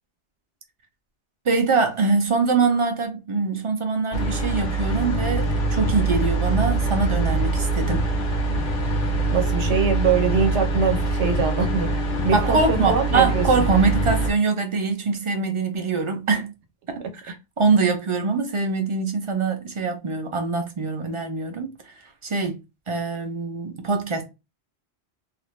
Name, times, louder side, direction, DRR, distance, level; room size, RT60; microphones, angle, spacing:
voice 1, 1.5-8.0 12.3-16.5 16.9-21.7 22.2-22.5 22.9-24.2, right 4 dB, 55° right, 0.3 m, -23 dB
sound 1, 4.1-14.3, right 2 dB, 55° left, 0.7 m, -24 dB
voice 2, 9.3-11.9 12.2-13.5, right 5 dB, 85° right, 1.0 m, -23 dB
2.4 x 2.1 x 3.0 m
omnidirectional pair, 1.1 m